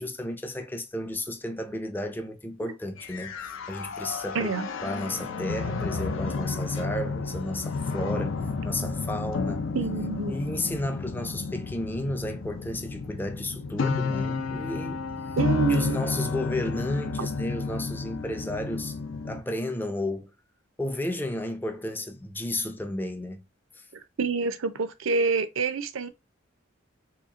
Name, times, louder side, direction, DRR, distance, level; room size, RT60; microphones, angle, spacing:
voice 1, 0.0-4.5 4.8-9.7 10.3-15.1 15.7-19.0 19.2-20.3 20.8-23.4 23.7-23.9, left 1 dB, 10° left, 0.4 m, -33 dB
sound 1, 3.0-19.4, left 4 dB, 75° left, 0.5 m, -31 dB
voice 2, 4.3-4.7 9.7-10.3 15.4-16.0 17.2-17.3 24.2-26.1, right 4 dB, 80° right, 0.5 m, -27 dB
3.1 x 2.9 x 3.6 m
head